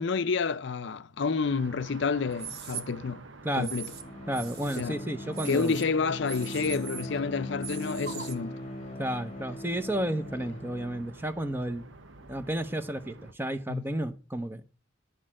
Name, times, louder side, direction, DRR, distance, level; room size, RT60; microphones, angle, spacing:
voice 1, 0.0-3.2 3.5-3.9 4.8-5.0 5.5-8.6 13.7-13.8, left 5 dB, 60° left, 0.5 m, -29 dB
sound 1, 1.4-13.3, right 2 dB, 70° right, 0.9 m, -50 dB
sound 2, 2.3-2.8 3.6-4.0 4.3-4.8 5.3-5.9 6.3-7.2 7.6-8.4, right 7 dB, 55° right, 1.3 m, -40 dB
Bowed string instrument, 3.5-11.2, left 1 dB, 30° left, 1.0 m, -40 dB
voice 2, 4.3-5.7 9.0-11.8 12.3-14.6, right 1 dB, 10° right, 0.8 m, -32 dB
11.5 x 6.4 x 7.5 m
head